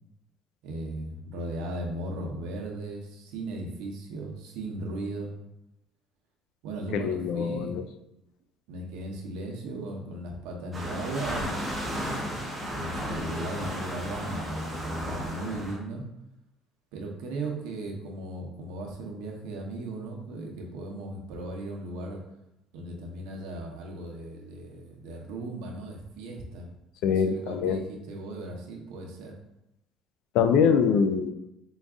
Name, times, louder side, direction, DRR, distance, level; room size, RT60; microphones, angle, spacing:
voice 1, 0.6-5.3 6.6-7.8 8.7-11.7 12.7-16.0 16.9-22.2 22.7-26.7 27.1-29.4, right 2 dB, 85° right, 1 dB, 0.8 m, -37 dB
voice 2, 6.9-7.8 27.0-27.8 30.3-31.3, left 6 dB, 60° left, 9 dB, 0.3 m, -23 dB
sound 1, 10.7-15.7, equal, 10° right, 0.8 m, -34 dB
3.9 x 2.4 x 3.5 m, 0.87 s
cardioid pair, 175°, 0 cm